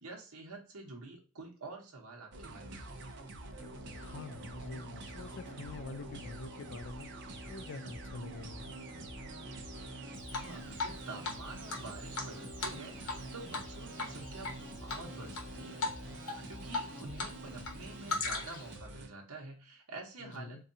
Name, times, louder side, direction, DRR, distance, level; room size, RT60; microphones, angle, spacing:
voice 1, 0.0-3.0 10.4-14.5 14.8-20.7, right 3 dB, 70° right, -1 dB, 0.9 m, -48 dB
sound 1, 2.3-19.1, right 2 dB, 55° right, 0.6 m, -47 dB
sound 2, 3.5-18.1, left 1 dB, 5° left, 1.2 m, -51 dB
voice 2, 3.9-7.1 7.5-8.7 20.2-20.6, left 3 dB, 55° left, 10 dB, 0.4 m, -45 dB
Drip, 10.3-11.0 11.2-11.3 11.7-13.2 13.5-13.7 14.0-14.5 14.9-15.4 15.8-16.0 16.3-17.3 17.6-18.7, left 3 dB, 85° left, 0.9 m, -36 dB
4.1 x 2.3 x 2.6 m, 0.36 s
head